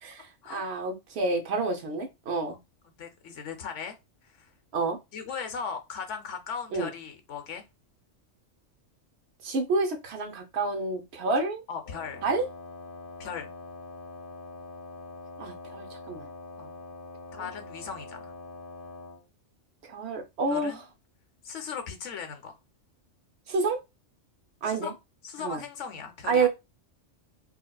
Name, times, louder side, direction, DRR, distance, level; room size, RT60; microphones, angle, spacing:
voice 1, 0.0-2.6 4.7-5.0 6.7-6.9 9.4-11.6 12.2-12.5 15.4-16.3 17.3-17.5 19.8-20.8 23.5-23.8 24.6-24.9 25.4-25.6 26.3-26.5, right 3 dB, 65° right, 0.9 m, -29 dB
voice 2, 3.0-4.0 4.2-4.5 5.1-7.6 11.7-12.2 13.2-13.5 16.6-16.7 17.4-18.3 20.5-20.8 21.4-22.6 24.6-25.0 25.2-26.5, left 6 dB, 75° left, 1.0 m, -38 dB
Wind instrument woodwind instrument, 11.8-19.3, left 3 dB, 50° left, 0.9 m, -44 dB
4.3 x 2.1 x 2.3 m
omnidirectional pair, 1.3 m